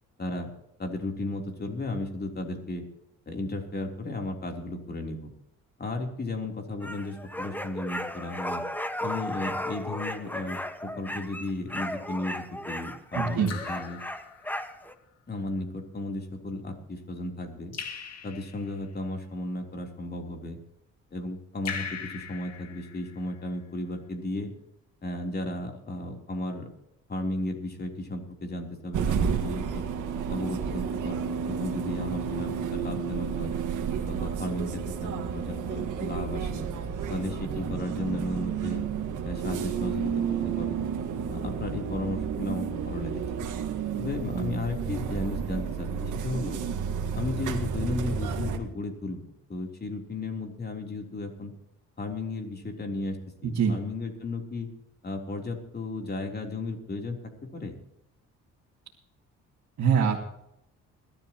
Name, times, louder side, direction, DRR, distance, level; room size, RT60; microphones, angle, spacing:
voice 1, 0.8-2.8 3.2-5.3 5.8-8.6 9.0-14.0 15.3-17.7 18.2-20.6 21.1-24.5 25.0-26.7 27.1-29.9 30.3-33.5 34.1-36.7 37.1-38.8 39.2-40.9 41.3-43.5 44.0-46.6 47.1-51.5 52.0-54.7 55.0-57.2 57.5-57.8, left 2 dB, 35° left, 3 dB, 3.5 m, -34 dB
sound 1, 6.8-14.9, left 1 dB, 5° left, 1.3 m, -35 dB
Raindrop / Drip, 11.7-12.1 13.5-14.8 17.7-18.8 21.7-23.4, left 6 dB, 55° left, 2.3 m, -40 dB
voice 2, 13.1-13.5 53.4-53.8 59.8-60.2, right 6 dB, 65° right, -3 dB, 2.3 m, -23 dB
sound 2, 28.9-48.6, right 7 dB, 80° right, 1.9 m, -31 dB
22.0 x 12.5 x 3.0 m, 0.80 s
cardioid pair, 90°, 30 cm